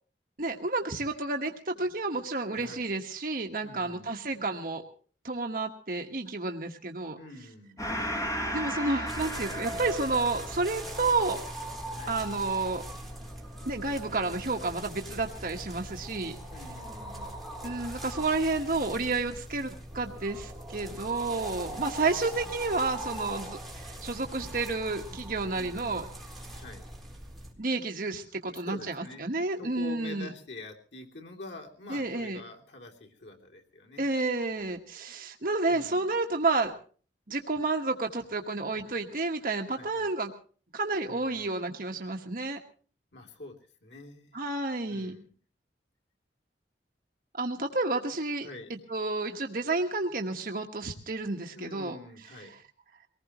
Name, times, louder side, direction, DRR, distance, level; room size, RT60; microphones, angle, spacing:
voice 1, 0.4-4.8 5.2-7.2 8.5-11.4 12.1-12.8 13.6-16.4 17.6-26.0 27.6-30.3 31.9-32.4 34.0-36.7 37.3-40.3 40.7-42.6 44.3-45.1 47.3-48.5 48.9-52.0, right 3 dB, 50° right, 3 dB, 1.4 m, -30 dB
voice 2, 2.4-2.9 3.6-4.4 7.2-7.8 11.9-12.2 16.5-17.5 25.5-26.2 26.5-26.9 28.4-29.3 29.6-34.1 35.7-36.1 39.7-40.1 41.0-41.6 43.1-43.5 43.8-44.4 44.8-45.3 48.4-48.8 51.5-52.6, left 2 dB, 80° left, 1 dB, 3.1 m, -46 dB
Gong, 7.8-14.7, equal, 20° left, 2.3 m, -37 dB
sound 1, 9.1-27.5, right 1 dB, ahead, 4.3 m, -41 dB
23.5 x 19.5 x 3.1 m, 0.42 s
head